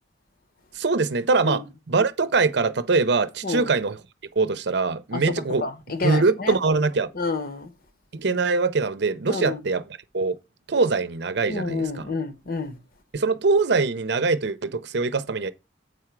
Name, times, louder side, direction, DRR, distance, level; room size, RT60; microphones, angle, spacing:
voice 1, 0.7-4.0 4.4-5.7 6.0-7.1 8.1-9.8 10.1-10.4 10.7-12.0 13.1-15.5, right 4 dB, 65° right, 0.6 m, -23 dB
voice 2, 5.6-6.6 7.1-7.7 9.3-9.6 11.5-12.8, left 4 dB, 55° left, 1.0 m, -29 dB
8.1 x 4.8 x 4.6 m
head